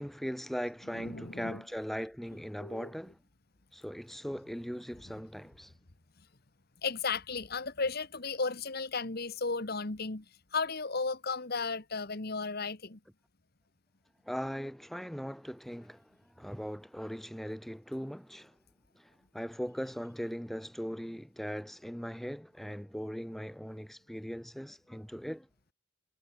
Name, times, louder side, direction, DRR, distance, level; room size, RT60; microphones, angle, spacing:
voice 1, 0.0-3.2 3.7-5.7 14.2-18.6 18.9-25.5, equal, ahead, 1.3 m, -39 dB
voice 2, 0.9-1.6 2.6-2.9 6.8-10.2 10.5-13.0, left 4 dB, 50° left, 1.5 m, -34 dB
head